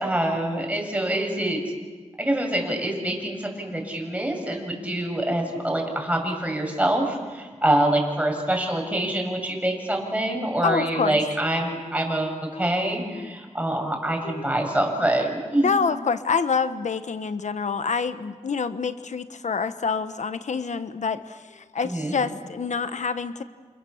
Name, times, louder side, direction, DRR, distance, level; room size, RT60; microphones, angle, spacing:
voice 1, 0.0-1.6 2.2-15.8 21.9-22.1, right 1 dB, 10° right, 2 dB, 7.8 m, -25 dB
voice 2, 10.6-11.2 12.5-12.7 13.1-13.3 14.2-14.5 15.6-23.4, left 5 dB, 80° left, 11 dB, 1.0 m, -27 dB
29.0 x 28.5 x 7.2 m, 1.5 s
wide cardioid pair, 70°, 12 cm